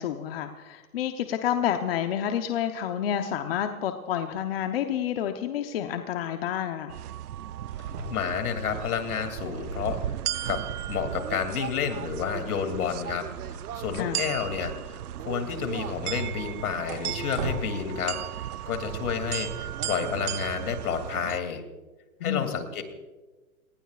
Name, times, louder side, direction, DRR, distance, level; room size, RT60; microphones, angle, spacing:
voice 1, 0.0-7.0 13.9-14.3 22.2-22.5, left 10 dB, 40° left, 6 dB, 0.9 m, -29 dB
sound 1, 6.9-21.4, right 12 dB, 85° right, 0.6 m, -35 dB
sound 2, 7.6-17.6, right 1 dB, 40° right, 7.3 m, -43 dB
voice 2, 8.1-10.0 10.5-10.6 10.9-15.0 15.2-21.6 22.2-22.8, left 7 dB, 75° left, 7 dB, 2.9 m, -30 dB
29.5 x 19.0 x 2.5 m, 1.2 s
hypercardioid pair, 160°, 44 cm